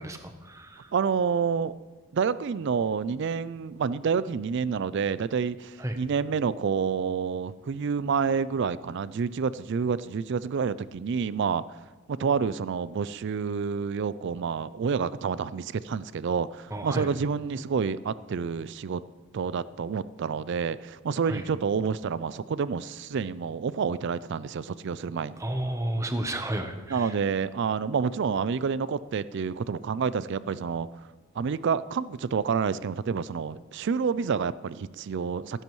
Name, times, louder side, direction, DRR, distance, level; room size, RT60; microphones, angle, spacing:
voice 1, 0.0-0.9 5.8-6.0 16.7-17.1 21.2-21.4 25.4-27.1, right 1 dB, 15° right, 6 dB, 0.8 m, -32 dB
voice 2, 0.9-1.8 2.1-11.6 12.1-19.0 19.3-25.4 26.9-30.9 31.4-35.6, right 6 dB, 55° right, 17 dB, 0.4 m, -28 dB
15.5 x 13.5 x 3.1 m, 1.3 s
head